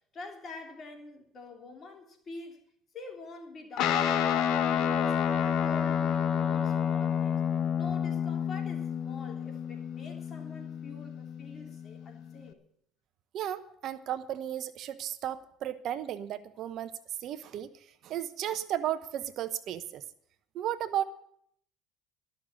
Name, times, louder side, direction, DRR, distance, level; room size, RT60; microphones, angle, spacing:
voice 1, 0.1-2.6 2.9-7.4 7.8-12.6, left 2 dB, 40° left, 3.3 m, -46 dB
Guitar, 3.8-12.5, left 8 dB, 65° left, 1.0 m, -29 dB
voice 2, 13.3-16.9 17.2-17.7 18.0-20.0 20.5-21.0, right 11 dB, 60° right, 0.9 m, -34 dB
13.0 x 6.6 x 9.6 m
supercardioid pair, 80°, 0 cm